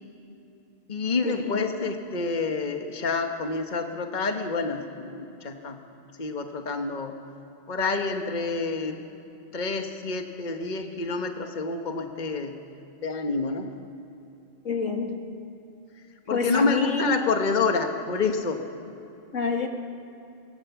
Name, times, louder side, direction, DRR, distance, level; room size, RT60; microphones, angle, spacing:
voice 1, 0.9-5.8 6.2-7.2 7.7-9.0 9.5-12.5 13.0-13.7 16.3-18.6, left 4 dB, 40° left, 4 dB, 1.4 m, -28 dB
voice 2, 14.7-15.2 16.3-17.1 19.3-19.7, left 4 dB, 75° left, 3 dB, 2.3 m, -26 dB
24.5 x 20.5 x 7.1 m, 2.9 s
omnidirectional pair, 1.3 m